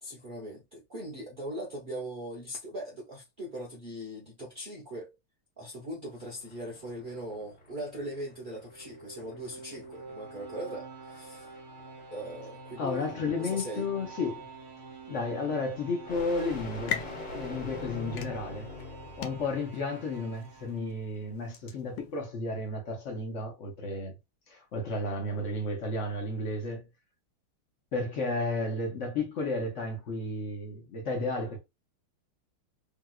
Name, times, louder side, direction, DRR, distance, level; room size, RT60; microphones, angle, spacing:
voice 1, 0.0-5.2 5.6-11.6 12.1-13.1 13.4-13.9, right 1 dB, 70° right, 0.4 m, -40 dB
sound 1, 6.1-19.6, left 2 dB, 30° left, 1.1 m, -45 dB
sound 2, 8.4-21.5, right 3 dB, 35° right, 1.2 m, -48 dB
voice 2, 12.8-14.5 15.1-18.7 19.2-24.1 24.5-26.9 27.9-31.6, left 2 dB, 50° left, 0.9 m, -33 dB
sound 3, 16.7-22.2, left 8 dB, 80° left, 1.4 m, -42 dB
3.5 x 2.9 x 2.3 m
omnidirectional pair, 2.3 m